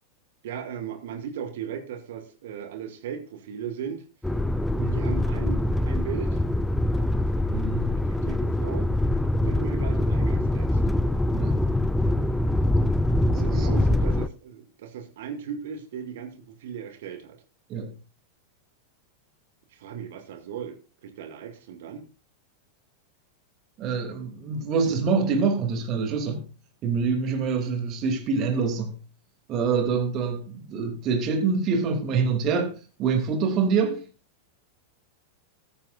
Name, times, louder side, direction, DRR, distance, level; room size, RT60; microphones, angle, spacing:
voice 1, 0.4-4.0 4.9-6.4 8.1-8.9 9.4-10.8 13.3-17.4 19.7-20.8 21.0-22.1, right 8 dB, 55° right, 2.2 m, -37 dB
sound 1, 4.2-14.3, left 1 dB, 5° left, 0.5 m, -24 dB
voice 2, 7.5-8.0 11.3-11.6 13.3-13.7 17.7-17.9 23.8-26.5 26.8-29.0 29.5-34.0, right 5 dB, 35° right, 2.8 m, -26 dB
15.0 x 13.0 x 2.5 m
figure-of-eight pair, 90°, 0 cm